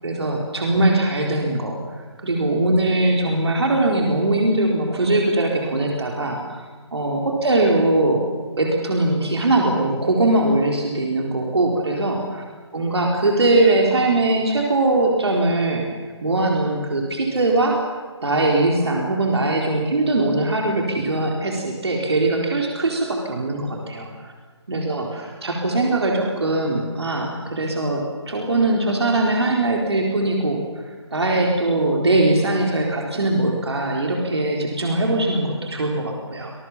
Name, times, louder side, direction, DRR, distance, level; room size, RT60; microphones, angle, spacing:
voice 1, 0.0-8.3 8.6-12.4 12.7-15.8 16.2-17.8 18.2-24.3 24.7-30.6 31.1-36.5, right 2 dB, 65° right, 0 dB, 4.2 m, -21 dB
26.0 x 21.0 x 7.3 m, 1.4 s
figure-of-eight pair, 150°, 15 cm